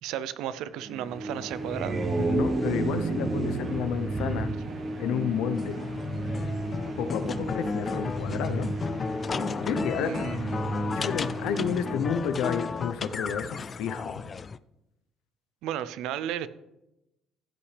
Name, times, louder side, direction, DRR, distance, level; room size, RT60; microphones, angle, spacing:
voice 1, 0.0-2.0 10.0-10.7 15.6-16.5, right 10 dB, 85° right, 16 dB, 0.5 m, -34 dB
sound 1, 0.7-12.6, right 2 dB, 50° right, 1.8 m, -35 dB
sound 2, 1.5-5.7, right 3 dB, 30° right, 1.1 m, -31 dB
voice 2, 2.2-4.6 5.0-5.8 7.0-8.7 9.6-10.3 10.9-14.2, left 8 dB, 85° left, 10 dB, 0.8 m, -31 dB
sound 3, 5.5-14.6, left 5 dB, 35° left, 0.3 m, -34 dB
15.0 x 8.6 x 3.4 m, 0.93 s
cardioid pair, 110°, 0 cm